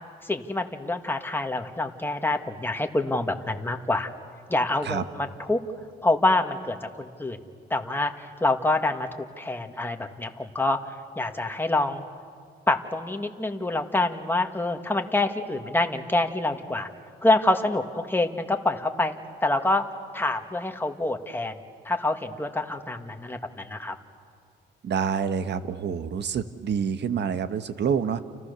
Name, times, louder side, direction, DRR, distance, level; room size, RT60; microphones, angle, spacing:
voice 1, 0.3-4.1 4.5-5.6 6.0-7.4 7.7-12.1 12.7-16.9 17.2-19.2 19.4-19.8 20.1-21.5 21.9-23.4 23.7-23.9, left 2 dB, 10° left, 5 dB, 2.0 m, -26 dB
voice 2, 24.8-28.2, right 7 dB, 60° right, 10 dB, 1.4 m, -27 dB
30.0 x 29.0 x 6.9 m, 2.1 s
cardioid pair, 90°, 20 cm